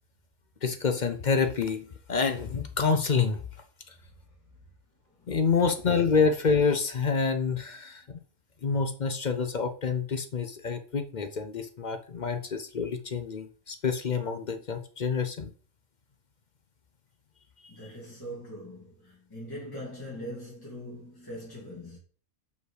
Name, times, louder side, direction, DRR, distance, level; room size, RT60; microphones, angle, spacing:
voice 1, 0.6-3.4 5.3-8.2 8.6-15.5, left 5 dB, 45° left, 0.7 m, -27 dB
voice 2, 17.7-22.0, equal, 15° left, 2.7 m, -41 dB
6.3 x 5.5 x 4.9 m
omnidirectional pair, 1.3 m